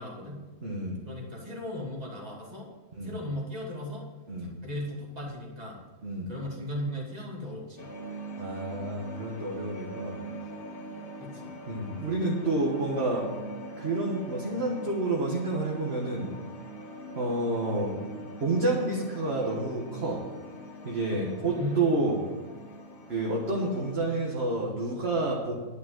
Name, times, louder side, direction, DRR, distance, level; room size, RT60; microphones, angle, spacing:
voice 1, 0.0-0.4 1.0-2.7 3.0-4.1 4.4-5.8 6.3-7.9 11.2-11.5 21.4-22.0, left 1 dB, 25° right, -3 dB, 2.6 m, -36 dB
voice 2, 0.6-1.0 2.9-3.1 4.3-4.5 6.0-6.3 8.4-10.2 11.7-13.3 13.8-16.3 17.1-18.0 18.4-20.2 20.8-22.2 23.1-25.5, right 2 dB, 40° right, -3 dB, 1.7 m, -29 dB
sound 1, 7.8-24.0, right 2 dB, 35° left, 1.4 m, -42 dB
11.0 x 6.3 x 7.7 m, 1.3 s
omnidirectional pair, 1.7 m